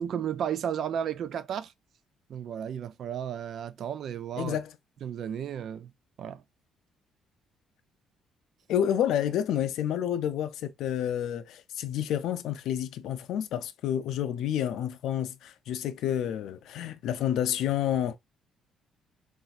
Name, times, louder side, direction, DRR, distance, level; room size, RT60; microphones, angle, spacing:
voice 1, 0.0-1.7 2.3-4.6 5.0-5.9 6.2-6.4, right 9 dB, 60° right, 0.4 m, -33 dB
voice 2, 4.4-4.7 8.7-18.2, left 10 dB, 80° left, 0.4 m, -29 dB
4.0 x 2.5 x 2.4 m
cardioid pair, 105°, 0 cm